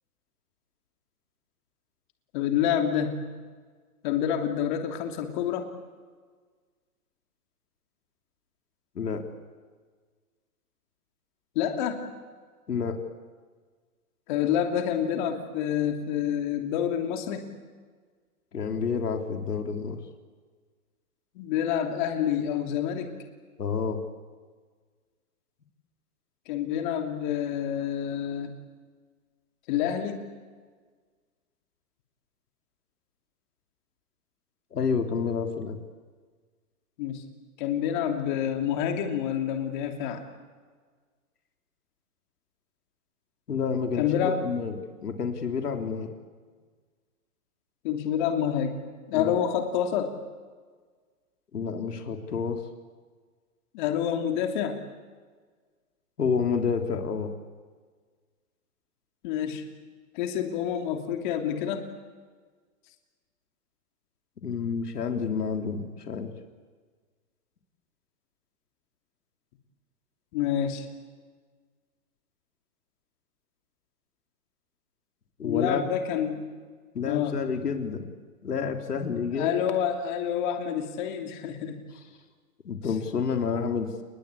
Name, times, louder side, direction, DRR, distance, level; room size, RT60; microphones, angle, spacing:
voice 1, 2.3-3.3 4.0-5.7 11.5-12.1 14.3-17.5 21.3-23.1 26.5-28.5 29.7-30.2 37.0-37.2 37.6-40.2 44.0-44.4 47.8-48.8 49.1-50.1 53.7-54.8 59.2-59.6 60.1-61.9 70.3-70.8 75.4-76.5 77.0-77.4 79.3-81.8, left 9 dB, 30° left, 5 dB, 3.0 m, -28 dB
voice 2, 12.7-13.0 18.5-20.0 23.6-24.0 34.7-35.8 43.5-46.1 49.1-49.4 51.5-52.6 56.2-57.3 64.4-66.3 75.4-75.9 76.9-78.1 78.4-79.6 81.9-82.0 82.6-84.0, left 5 dB, 90° left, 5 dB, 3.5 m, -29 dB
30.0 x 21.0 x 8.5 m, 1.5 s
hypercardioid pair, 155°, 45 cm